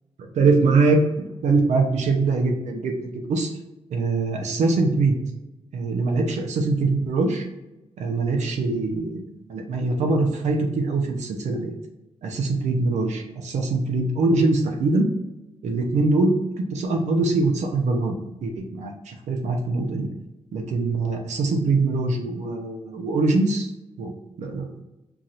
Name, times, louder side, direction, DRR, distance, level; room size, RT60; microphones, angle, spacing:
voice 1, 0.2-3.5 3.9-5.2 5.7-7.4 8.0-11.7 12.2-15.1 15.6-16.3 16.7-20.1 20.5-23.7 24.0-24.1 24.4-24.7, right 3 dB, 90° right, 2 dB, 0.8 m, -23 dB
5.9 x 2.6 x 2.9 m, 1.0 s
wide cardioid pair, 160°, 12 cm